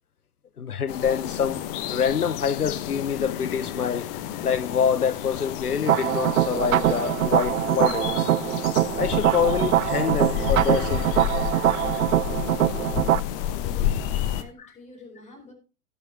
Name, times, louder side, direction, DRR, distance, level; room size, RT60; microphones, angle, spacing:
voice 1, 0.6-4.1 4.4-8.3 9.0-11.3 14.6-14.7, left 7 dB, 80° left, 0.8 m, -26 dB
sound 1, 0.9-14.4, left 11 dB, 40° left, 1.0 m, -30 dB
sound 2, 5.9-13.2, right 12 dB, 65° right, 0.6 m, -23 dB
voice 2, 13.4-15.5, left 2 dB, 15° left, 4.5 m, -48 dB
17.0 x 6.4 x 3.6 m
figure-of-eight pair, 95°, 45 cm